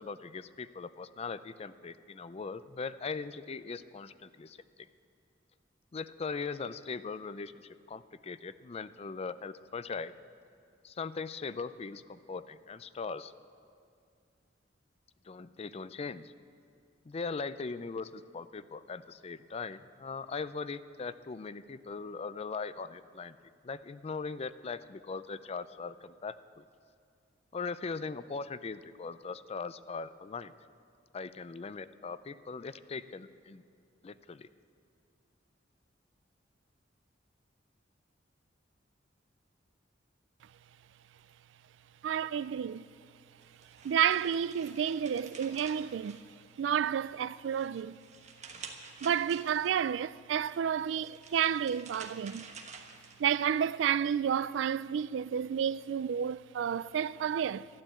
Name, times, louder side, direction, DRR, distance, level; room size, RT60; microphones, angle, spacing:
voice 1, 0.0-4.6 5.9-10.1 10.8-13.3 15.2-16.3 17.1-23.4 23.6-26.7 27.5-30.5 31.1-33.6 34.0-34.5, left 4 dB, 35° left, 0.4 m, -40 dB
voice 2, 42.0-42.9 43.8-46.2 46.6-48.0 49.0-52.5 53.2-57.7, right 8 dB, 75° right, 0.3 m, -30 dB
sound 1, 43.4-46.8 47.2-49.9 50.8-53.5, right 5 dB, 40° right, 1.3 m, -50 dB
12.0 x 12.0 x 8.2 m
head